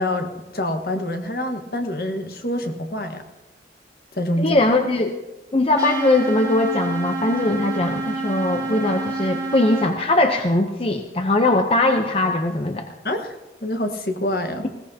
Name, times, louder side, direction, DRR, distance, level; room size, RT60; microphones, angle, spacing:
voice 1, 0.0-3.2 4.1-4.6 13.0-14.7, left 1 dB, 60° left, 5 dB, 1.4 m, -26 dB
voice 2, 4.4-5.1 5.5-12.9, left 2 dB, 30° left, 5 dB, 0.7 m, -20 dB
sound 1, 5.8-9.9, right 2 dB, 20° right, 1.6 m, -28 dB
19.5 x 17.0 x 2.8 m, 1.1 s
head